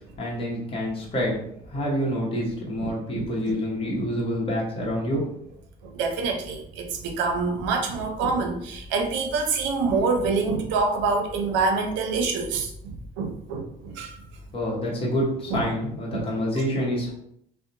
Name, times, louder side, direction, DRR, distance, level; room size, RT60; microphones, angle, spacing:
voice 1, 0.2-1.4 1.7-5.2 14.5-17.1, equal, 30° left, -5 dB, 1.0 m, -27 dB
voice 2, 2.8-3.5 5.9-14.2 15.5-15.6 16.1-16.3, right 4 dB, 80° right, 4 dB, 0.6 m, -26 dB
2.7 x 2.1 x 2.5 m, 0.73 s
cardioid pair, 105°, 19 cm